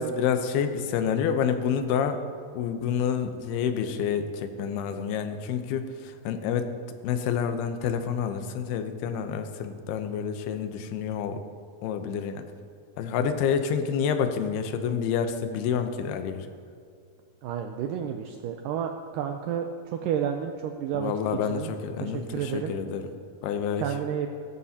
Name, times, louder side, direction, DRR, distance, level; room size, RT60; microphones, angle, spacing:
voice 1, 0.0-2.2 2.5-6.7 7.0-11.4 11.8-12.4 13.0-16.5 20.9-23.1 23.4-23.9, left 7 dB, 85° left, 8 dB, 2.8 m, -28 dB
voice 2, 17.4-21.1 21.5-21.7 22.0-22.7 23.8-24.3, right 8 dB, 85° right, 5 dB, 1.9 m, -31 dB
16.5 x 13.5 x 2.8 m, 2.4 s
omnidirectional pair, 4.5 m